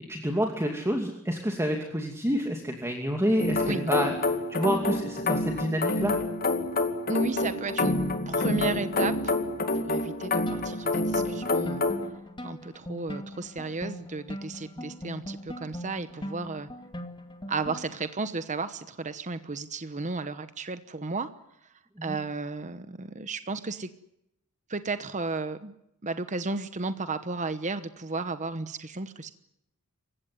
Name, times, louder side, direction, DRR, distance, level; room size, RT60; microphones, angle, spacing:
voice 1, 0.1-4.1 4.5-6.1 14.8-14.9 22.0-22.2, equal, 10° right, 3 dB, 2.6 m, -28 dB
sound 1, 3.4-12.1, left 2 dB, 45° left, 2.5 m, -28 dB
voice 2, 7.1-8.0 8.3-9.3 9.7-11.8 12.4-16.7 17.5-21.3 22.0-23.9 24.7-25.7 26.0-29.3, right 3 dB, 35° right, 11 dB, 1.0 m, -33 dB
sound 2, 10.5-18.1, equal, 20° left, 2.3 m, -40 dB
27.5 x 16.0 x 9.6 m, 0.83 s
head